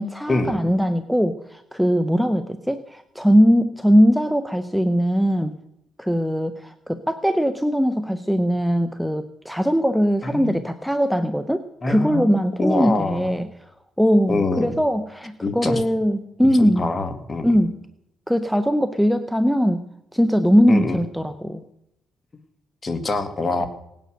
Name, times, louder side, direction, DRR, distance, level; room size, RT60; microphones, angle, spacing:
voice 1, 0.0-5.5 6.0-13.5 14.0-16.9 17.4-17.7 18.3-19.8 20.1-21.6, equal, ahead, 10 dB, 0.9 m, -20 dB
voice 2, 10.2-10.6 11.8-12.3 12.6-13.3 14.3-14.7 15.4-15.8 16.6-17.5 20.7-21.0 22.8-23.7, left 2 dB, 30° left, 9 dB, 2.1 m, -24 dB
18.0 x 9.6 x 6.6 m, 0.83 s
cardioid pair, 90°, 0 cm